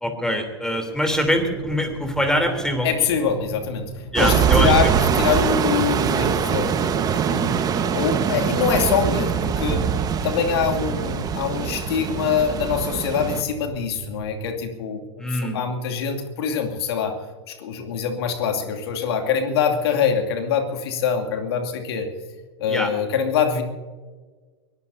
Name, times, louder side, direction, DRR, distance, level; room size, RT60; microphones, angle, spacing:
voice 1, 0.0-2.9 4.1-4.9 15.2-15.6 22.7-22.9, equal, 5° left, 5 dB, 3.4 m, -23 dB
sound 1, 1.1-14.5, right 4 dB, 60° right, 1.8 m, -39 dB
voice 2, 2.8-6.7 7.1-9.9 10.2-17.1 17.5-22.1 22.6-23.6, left 7 dB, 65° left, 4 dB, 2.6 m, -24 dB
sound 2, 4.2-13.4, right 7 dB, 25° right, 1.4 m, -23 dB
23.0 x 18.5 x 2.8 m, 1.4 s
hypercardioid pair, 100°, 14 cm